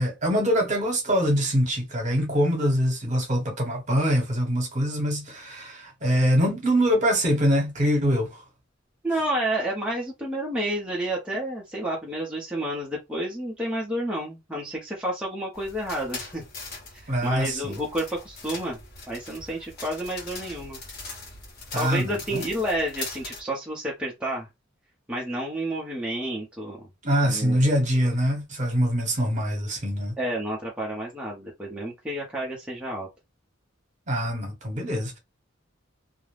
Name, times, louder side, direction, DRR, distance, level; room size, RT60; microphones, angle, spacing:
voice 1, 0.0-8.4 17.1-17.8 21.7-22.5 27.0-30.1 34.1-35.2, equal, 40° right, 1.1 m, -24 dB
voice 2, 9.0-16.4 16.9-18.8 19.1-20.8 21.7-24.5 25.1-26.9 27.2-27.7 30.2-33.1, right 1 dB, 5° right, 0.6 m, -30 dB
sound 1, 15.5-23.4, left 3 dB, 50° left, 1.1 m, -41 dB
2.4 x 2.0 x 3.2 m
head